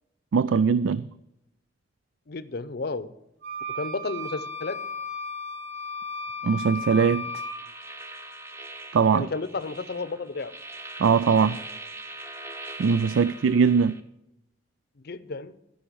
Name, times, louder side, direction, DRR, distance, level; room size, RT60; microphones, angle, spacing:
voice 1, 0.3-1.0 6.4-7.3 8.9-9.3 11.0-11.6 12.8-14.0, right 6 dB, 90° right, 0.4 m, -21 dB
voice 2, 2.3-3.1 3.7-4.8 9.1-10.5 15.0-15.6, left 3 dB, 55° left, 0.6 m, -32 dB
sound 1, 3.4-7.6, left 2 dB, 65° right, 2.9 m, -34 dB
sound 2, 7.2-14.0, right 2 dB, 15° right, 0.8 m, -41 dB
13.0 x 5.6 x 7.0 m
head